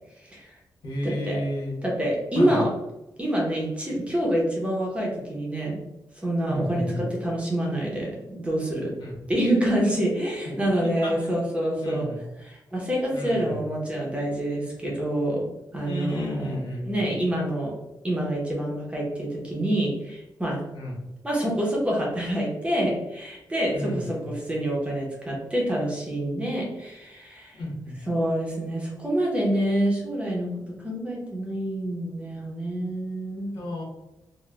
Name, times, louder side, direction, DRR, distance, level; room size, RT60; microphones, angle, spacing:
voice 1, 0.2-0.6 1.0-1.4 1.8-2.7 3.2-5.8 6.2-8.9 9.3-12.1 12.4-15.4 15.7-17.7 18.0-20.6 21.2-27.6 28.1-33.5, right 1 dB, 15° right, -4 dB, 0.7 m, -27 dB
voice 2, 0.8-1.8 2.3-2.6 6.5-7.0 9.0-9.2 10.8-11.3 11.8-12.2 13.1-13.7 15.8-17.1 20.7-21.0 23.7-24.2 27.6-27.9 33.5-33.8, equal, 80° left, -3 dB, 1.1 m, -32 dB
3.9 x 2.2 x 2.3 m, 0.97 s
wide cardioid pair, 155°, 8 cm